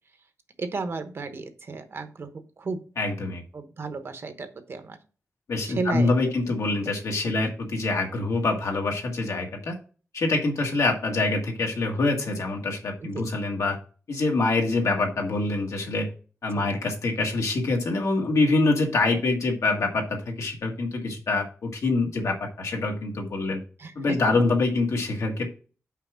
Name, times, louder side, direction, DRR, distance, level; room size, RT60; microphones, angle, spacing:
voice 1, 0.6-2.3 2.6-2.8 3.5-5.0 5.6-6.1 7.4-7.5 13.0-13.3 16.5-16.7 23.8-24.4, right 3 dB, 50° right, 8 dB, 1.0 m, -33 dB
voice 2, 3.0-3.4 5.5-9.7 10.1-13.8 14.1-16.1 16.4-23.6 23.9-25.5, left 3 dB, 75° left, 2 dB, 1.7 m, -25 dB
5.8 x 4.8 x 6.2 m, 0.38 s
wide cardioid pair, 150°, 5 cm